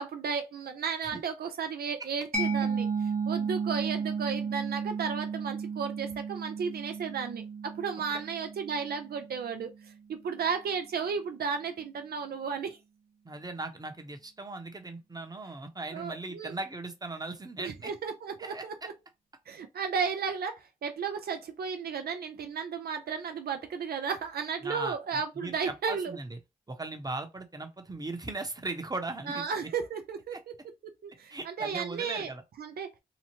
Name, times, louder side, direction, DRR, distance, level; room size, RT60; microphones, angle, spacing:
voice 1, 0.0-2.9 3.3-12.8 15.9-16.6 17.6-18.9 19.5-26.2 29.3-30.4 31.0-32.3 32.6-32.9, right 6 dB, 80° right, 0.4 m, -34 dB
Mallet percussion, 2.3-9.7, right 5 dB, 50° right, 0.9 m, -33 dB
voice 2, 13.2-17.9 18.4-18.9 24.6-26.4 26.7-29.5 30.3-30.4 31.3-32.4, right 2 dB, 25° right, 0.8 m, -38 dB
2.8 x 2.1 x 3.0 m
cardioid pair, 45°, 16 cm